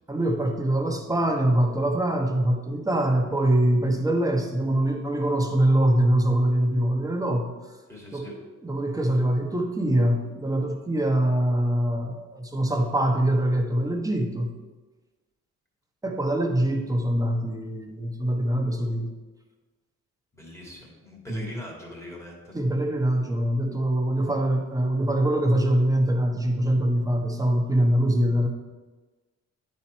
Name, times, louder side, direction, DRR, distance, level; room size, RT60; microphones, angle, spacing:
voice 1, 0.1-7.5 8.1-8.3 8.6-14.5 16.0-19.1 21.3-21.5 22.5-28.5, right 1 dB, 10° right, 2 dB, 1.1 m, -23 dB
voice 2, 7.9-8.3 20.3-22.5, left 1 dB, 10° left, -2 dB, 2.4 m, -42 dB
9.6 x 4.3 x 4.4 m, 1.2 s
cardioid pair, 90°, 30 cm